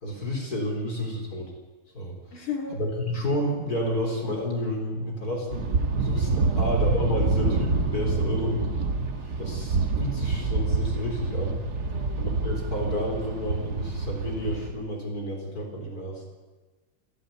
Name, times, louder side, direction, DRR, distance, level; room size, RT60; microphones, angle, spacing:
voice 1, 0.0-1.5 1.9-2.1 2.7-5.7 6.0-8.7 9.4-11.6 12.1-16.2, equal, 45° left, 1 dB, 4.5 m, -30 dB
voice 2, 2.3-2.8 6.4-6.7 9.3-9.4 11.8-12.3 16.2-16.4, left 6 dB, 80° left, 2 dB, 3.5 m, -36 dB
sound 1, 5.5-14.7, right 3 dB, 55° right, 1.9 m, -27 dB
27.0 x 11.5 x 9.5 m, 1.3 s
omnidirectional pair, 2.3 m